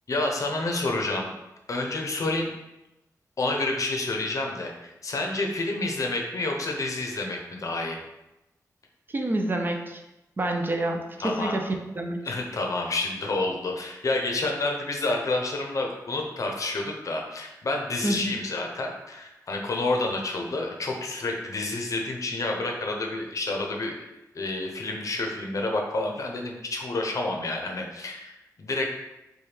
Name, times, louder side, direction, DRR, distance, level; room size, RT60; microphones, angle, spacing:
voice 1, 0.1-1.3 1.7-2.5 3.4-8.0 11.2-11.6 12.2-24.0 24.3-28.9, left 2 dB, 55° left, 2 dB, 0.6 m, -29 dB
voice 2, 9.1-10.0 10.4-12.2 18.0-18.4, right 1 dB, 30° right, 3 dB, 0.4 m, -28 dB
4.3 x 2.2 x 3.3 m, 0.95 s
wide cardioid pair, 90°, 7 cm